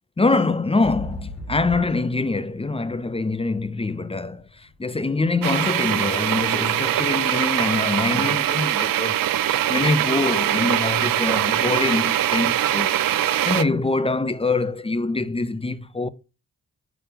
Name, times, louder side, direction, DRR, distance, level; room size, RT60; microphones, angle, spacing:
voice 1, 0.2-9.3 9.7-13.0 13.4-16.1, left 3 dB, 15° left, 0.6 m, -24 dB
sound 1, 0.8-4.7 5.3-5.4, left 1 dB, 60° left, 3.8 m, -36 dB
sound 2, 5.4-13.6, right 11 dB, 70° right, 0.6 m, -22 dB
5.7 x 5.2 x 5.5 m
cardioid pair, 75°, 35 cm